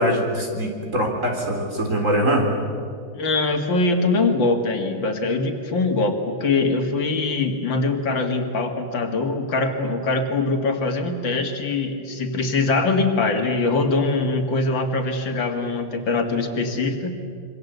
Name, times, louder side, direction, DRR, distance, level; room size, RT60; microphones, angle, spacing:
voice 1, 0.0-2.5, equal, 40° right, 2 dB, 4.2 m, -22 dB
voice 2, 3.1-17.2, left 3 dB, 75° left, 5 dB, 2.8 m, -23 dB
26.5 x 24.0 x 8.1 m, 2.2 s
omnidirectional pair, 2.1 m